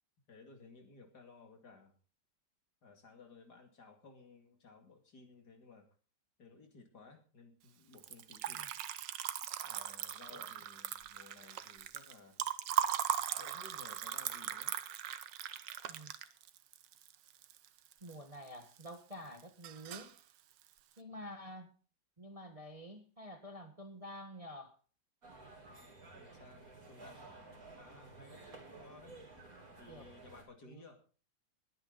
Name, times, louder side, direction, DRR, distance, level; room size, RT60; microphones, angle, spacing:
voice 1, 0.3-1.9 2.8-5.9 6.4-8.6 9.6-12.4 13.4-14.7 21.1-21.4 26.1-29.1 29.8-31.0, left 3 dB, 60° left, 4 dB, 2.9 m, -58 dB
Liquid, 7.9-18.1 18.5-19.1 19.4-20.2, right 11 dB, 75° right, 1.5 m, -39 dB
voice 2, 18.0-20.1 21.0-21.7 22.2-24.8 29.9-30.2 30.6-30.8, equal, 20° right, 6 dB, 1.2 m, -49 dB
sound 1, 25.2-30.4, right 2 dB, 50° right, 3.8 m, -54 dB
21.0 x 9.2 x 4.0 m, 0.38 s
omnidirectional pair, 2.0 m